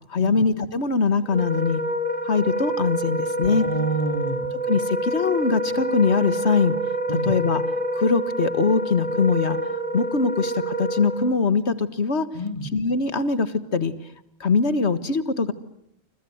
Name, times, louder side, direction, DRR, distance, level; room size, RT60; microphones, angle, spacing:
voice 1, 0.1-1.8 2.2-3.6 4.7-6.8 7.3-7.6 7.9-9.6 9.9-12.3 12.7-13.9 14.4-15.5, left 4 dB, 85° left, 14 dB, 1.9 m, -22 dB
Wind instrument woodwind instrument, 1.3-11.4, right 1 dB, 30° right, 2.9 m, -27 dB
voice 2, 3.4-4.6 7.1-7.3 12.3-12.8, right 2 dB, 30° left, 8 dB, 2.6 m, -29 dB
29.5 x 25.5 x 8.0 m, 0.75 s
omnidirectional pair, 1.1 m